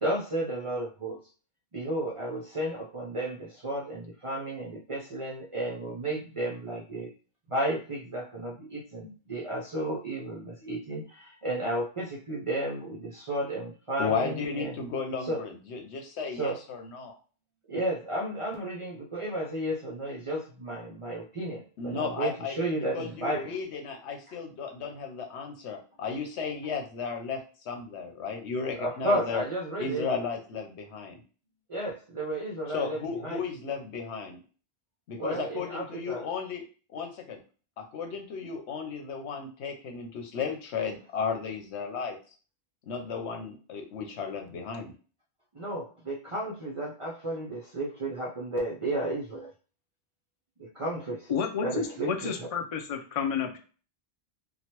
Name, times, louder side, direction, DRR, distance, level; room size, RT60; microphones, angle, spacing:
voice 1, 0.0-1.2 1.7-7.1 7.5-14.7 15.2-15.4 16.4-16.6 17.7-23.5 28.8-30.1 31.7-33.4 35.2-36.3 45.5-49.5 50.6-51.3 51.6-52.5, right 1 dB, 45° right, -2 dB, 0.4 m, -33 dB
voice 2, 14.0-17.1 21.8-27.4 27.6-29.4 29.8-31.2 32.7-34.4 35.1-36.6 36.9-37.4 37.8-42.2 42.8-44.9, left 5 dB, 80° left, 4 dB, 1.0 m, -34 dB
voice 3, 51.3-53.6, left 7 dB, 50° left, 5 dB, 0.4 m, -31 dB
3.1 x 2.2 x 2.9 m, 0.37 s
omnidirectional pair, 1.1 m